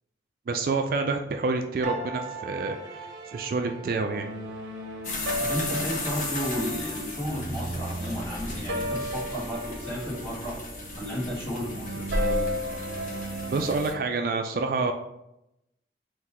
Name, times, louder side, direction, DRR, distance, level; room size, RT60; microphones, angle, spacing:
voice 1, 0.5-2.8 3.3-4.3 13.5-14.9, right 3 dB, 50° right, 5 dB, 0.3 m, -27 dB
sound 1, 1.8-14.0, equal, 80° right, 0.6 m, -35 dB
sound 2, 5.0-13.9, left 2 dB, 45° left, 0.8 m, -35 dB
voice 2, 5.4-10.6 10.9-12.9, equal, 15° left, -7 dB, 1.5 m, -33 dB
3.8 x 2.7 x 4.3 m, 0.87 s
head